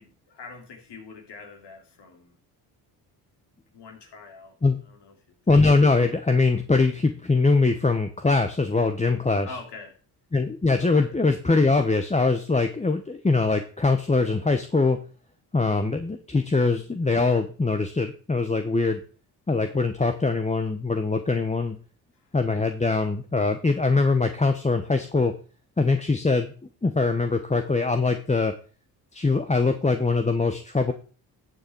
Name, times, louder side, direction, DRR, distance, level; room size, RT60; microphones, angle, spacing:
voice 1, 0.0-2.4 3.7-4.6 4.8-5.4 9.4-10.0 10.9-11.1 22.1-22.3, left 4 dB, 60° left, 3 dB, 3.1 m, -44 dB
voice 2, 5.5-9.5 10.3-15.0 15.5-19.0 19.5-21.8 22.3-25.3 25.8-26.5 26.8-28.5 29.1-30.9, left 3 dB, 15° left, 7 dB, 1.1 m, -22 dB
12.5 x 6.7 x 4.6 m, 0.39 s
hypercardioid pair, 55°, 46 cm